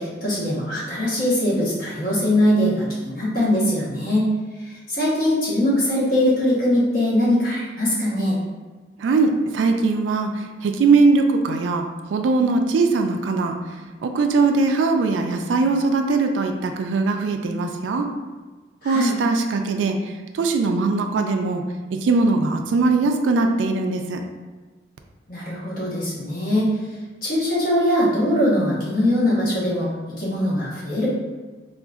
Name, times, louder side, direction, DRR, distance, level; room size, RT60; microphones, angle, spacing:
voice 1, 0.0-4.3 4.9-8.4 18.8-19.1 25.3-26.7 27.2-29.9 30.2-31.1, left 1 dB, 50° left, -7 dB, 1.0 m, -21 dB
voice 2, 9.0-11.8 12.1-13.6 14.0-18.1 18.8-20.0 20.3-21.6 21.9-24.2, right 3 dB, 90° right, 5 dB, 0.3 m, -20 dB
3.8 x 2.4 x 2.3 m, 1.3 s
head